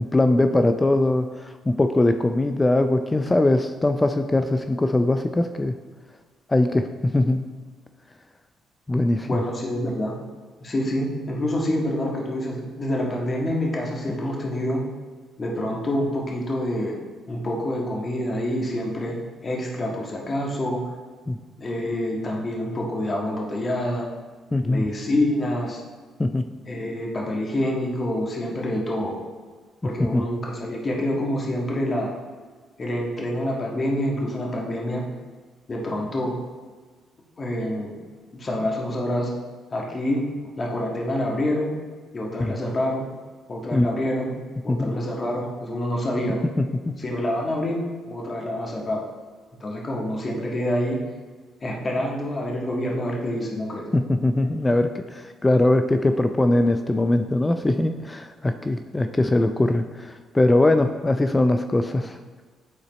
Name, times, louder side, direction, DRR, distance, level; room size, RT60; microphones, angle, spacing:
voice 1, 0.0-5.7 6.5-7.5 8.9-9.4 14.1-14.2 21.3-21.4 24.5-24.8 26.2-26.5 30.0-30.2 42.4-42.5 43.7-43.9 44.7-44.9 46.6-47.0 53.9-62.4, left 2 dB, 20° left, 7 dB, 0.4 m, -21 dB
voice 2, 9.3-10.1 10.6-14.8 15.4-17.0 17.3-20.8 21.6-24.1 24.6-25.8 26.7-29.2 29.8-32.1 32.8-35.0 35.7-36.3 37.4-37.9 38.3-39.3 39.7-40.2 40.6-41.7 42.1-43.1 43.5-44.4 44.6-46.4 47.0-49.0 49.6-51.0 51.6-53.8, left 1 dB, 40° left, -2 dB, 1.6 m, -27 dB
9.7 x 4.0 x 3.0 m, 1.4 s
supercardioid pair, 60°, 0 cm